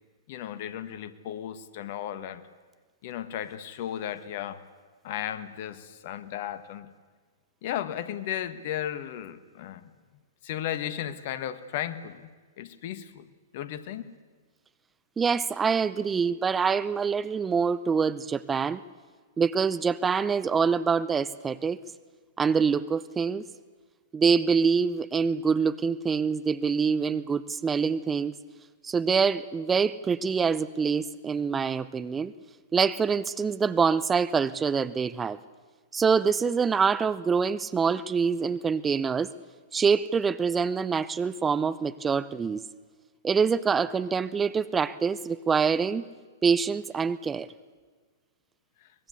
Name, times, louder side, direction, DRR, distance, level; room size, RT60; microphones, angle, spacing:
voice 1, 0.3-2.5 3.0-4.6 5.0-6.9 7.6-9.9 10.4-12.3 12.6-13.3 13.5-14.2 48.8-48.9, left 11 dB, 50° left, 13 dB, 1.5 m, -35 dB
voice 2, 15.2-18.8 19.4-21.8 22.4-23.4 24.1-28.4 28.8-32.3 32.7-35.4 35.9-39.3 39.7-42.6 43.2-46.0 46.4-47.5, right 5 dB, 15° right, 16 dB, 0.7 m, -25 dB
23.5 x 21.0 x 8.3 m, 1.5 s
figure-of-eight pair, 110°, 0 cm